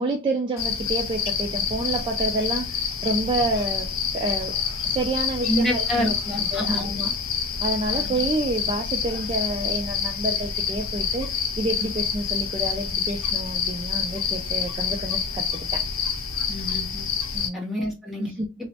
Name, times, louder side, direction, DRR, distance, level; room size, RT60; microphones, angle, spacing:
voice 1, 0.0-4.6 4.8-7.1 7.6-15.9 17.3-17.6 18.2-18.5, right 2 dB, 25° right, 0.3 m, -28 dB
sound 1, 0.6-17.5, left 7 dB, 80° left, 0.5 m, -27 dB
voice 2, 5.5-7.1 7.9-8.2 16.5-17.1 17.5-18.3, equal, ahead, 0.8 m, -28 dB
3.0 x 2.0 x 2.7 m
head